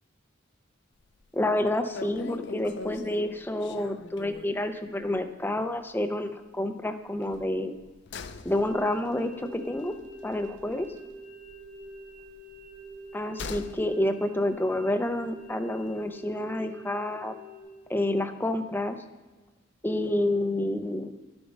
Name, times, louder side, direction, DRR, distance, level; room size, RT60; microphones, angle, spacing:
sound 1, 1.0-1.3 1.6-1.7 1.9-4.7 5.0-5.2 5.5-5.6 7.2-11.2 11.4-13.9 14.1-14.2, left 4 dB, 60° left, 0.5 m, -42 dB
voice 1, 1.3-7.7 8.4-9.9 10.2-10.9 13.1-17.3 17.9-19.0 19.8-21.1, left 1 dB, 10° left, 7 dB, 0.5 m, -29 dB
sound 2, 8.5-17.6, right 1 dB, 10° right, 2.3 m, -46 dB
10.5 x 7.0 x 5.3 m, 1.2 s
head